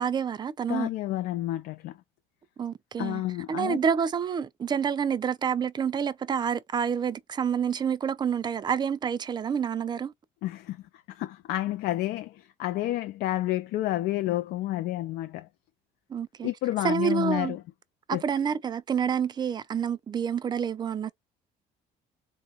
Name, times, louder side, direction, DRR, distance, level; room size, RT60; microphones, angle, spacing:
voice 1, 0.0-0.9 2.6-3.2 3.5-10.1 16.1-16.5 16.8-17.6 18.1-21.1, right 7 dB, 25° right, 0.3 m, -28 dB
voice 2, 0.7-2.0 3.0-3.8 10.4-10.8 11.1-15.5 16.4-17.6 18.1-18.2, left 15 dB, 75° left, 0.4 m, -30 dB
3.8 x 2.3 x 2.7 m
cardioid pair, 110°, 17 cm